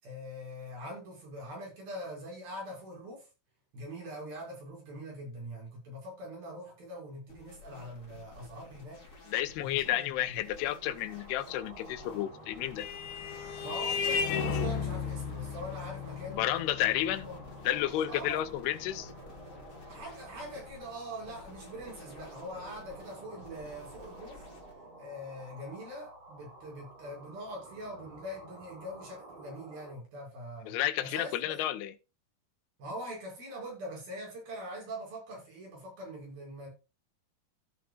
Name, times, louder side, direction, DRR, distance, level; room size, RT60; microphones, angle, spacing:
voice 1, 0.0-3.3 3.7-9.0 9.6-10.4 13.6-16.5 16.8-17.4 18.1-18.5 19.9-24.4 25.0-31.6 32.8-36.7, equal, 65° right, 7.9 m, -43 dB
sound 1, 7.3-24.7, left 3 dB, 20° left, 2.6 m, -53 dB
voice 2, 9.3-12.9 16.4-17.3 17.7-19.1 30.7-31.9, left 13 dB, 80° left, 2.7 m, -31 dB
sound 2, 10.7-29.9, right 2 dB, 40° right, 4.7 m, -52 dB
Vehicle horn car horn honking, 12.2-21.1, left 6 dB, 60° left, 2.3 m, -36 dB
15.0 x 7.0 x 2.4 m
omnidirectional pair, 4.6 m